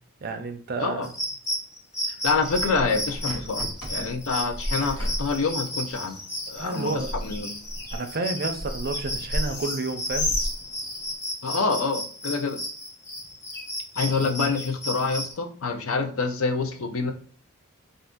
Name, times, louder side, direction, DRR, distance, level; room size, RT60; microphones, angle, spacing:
voice 1, 0.2-1.1 3.6-3.7 6.5-7.1 7.9-10.4 14.0-14.3, right 3 dB, 45° right, 7 dB, 0.4 m, -30 dB
sound 1, 1.0-15.3, equal, 15° left, 0.5 m, -34 dB
voice 2, 2.2-6.2 6.5-6.9 7.2-7.5 11.4-12.6 14.0-17.1, left 4 dB, 70° left, 6 dB, 0.6 m, -26 dB
Bird, 2.3-11.1, left 1 dB, 90° left, 1.2 m, -34 dB
2.6 x 2.5 x 3.6 m, 0.44 s
head